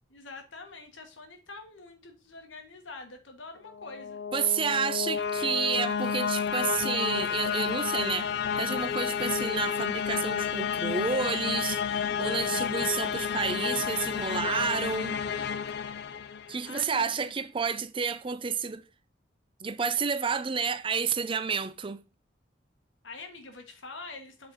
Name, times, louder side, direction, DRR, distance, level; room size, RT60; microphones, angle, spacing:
voice 1, 0.1-4.2 4.7-4.8 16.6-17.3 23.0-24.5, left 3 dB, 90° left, 1.6 m, -45 dB
sound 1, 3.7-16.7, left 7 dB, 60° left, 0.4 m, -31 dB
voice 2, 4.3-8.3 8.6-15.2 16.5-18.8 19.6-22.0, right 6 dB, 25° right, 0.4 m, -30 dB
7.7 x 4.2 x 4.5 m
head